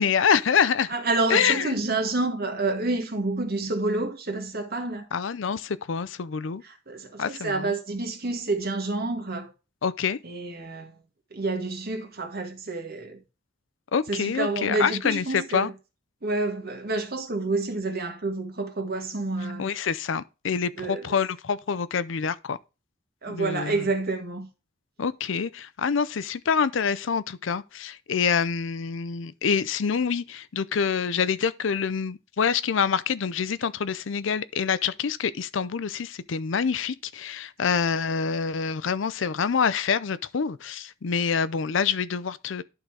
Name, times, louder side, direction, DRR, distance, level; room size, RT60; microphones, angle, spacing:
voice 1, 0.0-0.9 1.3-1.8 5.1-6.6 7.2-7.7 9.8-10.2 13.9-15.7 19.6-22.6 23.3-23.8 25.0-42.6, left 6 dB, 70° left, 0.5 m, -26 dB
voice 2, 0.9-5.1 6.6-9.5 10.2-11.0 11.3-13.2 14.1-15.7 16.2-19.7 20.7-21.2 23.2-24.5, right 2 dB, 50° right, 1.7 m, -29 dB
11.5 x 3.9 x 4.6 m
head